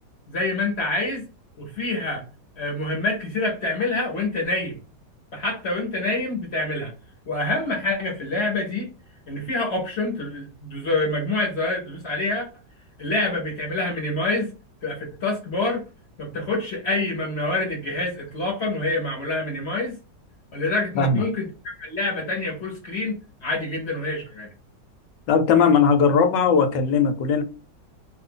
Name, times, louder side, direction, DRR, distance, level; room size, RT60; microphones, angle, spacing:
voice 1, 0.3-1.2 1.6-2.2 2.6-4.8 5.3-6.9 7.3-8.9 9.3-12.5 13.0-14.5 14.8-15.8 16.2-20.0 20.5-21.5 21.8-24.5, left 2 dB, 45° left, 1.0 m, -26 dB
voice 2, 25.3-27.4, left 5 dB, 85° left, 1.3 m, -18 dB
2.7 x 2.5 x 3.7 m
omnidirectional pair, 1.9 m